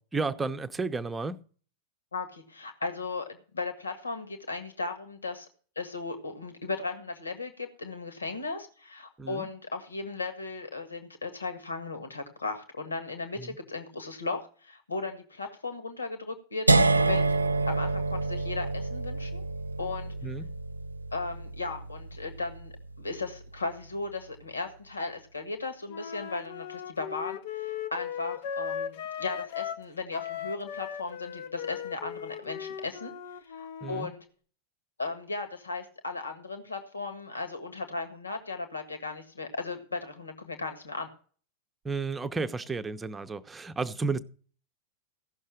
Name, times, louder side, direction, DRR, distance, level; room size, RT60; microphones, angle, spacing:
voice 1, 0.1-1.4 9.2-9.5 13.4-13.6 20.2-20.5 33.8-34.1 41.8-44.2, right 4 dB, 15° right, 0.8 m, -32 dB
voice 2, 2.1-5.5 5.7-17.4 17.7-19.4 19.8-20.1 21.1-34.2 35.0-41.1, left 3 dB, 75° left, 1.7 m, -36 dB
sound 1, 16.7-22.6, right 3 dB, 80° right, 0.6 m, -27 dB
Wind instrument woodwind instrument, 25.9-29.9 30.1-34.1, left 8 dB, 50° left, 0.7 m, -38 dB
16.0 x 6.5 x 6.0 m
figure-of-eight pair, 90°, 0 cm